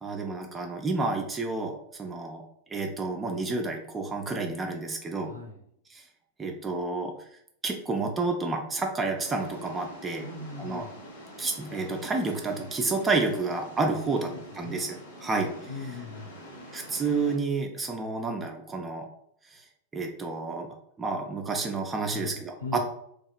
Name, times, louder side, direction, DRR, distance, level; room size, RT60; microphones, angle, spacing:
voice 1, 0.0-2.4 2.7-5.3 5.9-6.0 6.4-7.1 7.6-10.3 10.6-10.9 11.4-14.3 14.6-14.9 15.2-15.5 16.7-19.1 19.5-19.6 19.9-20.7 21.0-22.8, right 3 dB, 15° right, 2 dB, 0.3 m, -30 dB
voice 2, 5.2-5.6 10.2-11.0 14.2-14.9 15.7-16.4 22.1-22.8, left 3 dB, 85° right, 0 dB, 0.6 m, -40 dB
sound 1, 9.2-17.4, equal, 55° left, 0.6 m, -46 dB
2.7 x 2.2 x 2.4 m, 0.70 s
figure-of-eight pair, 90°, 0 cm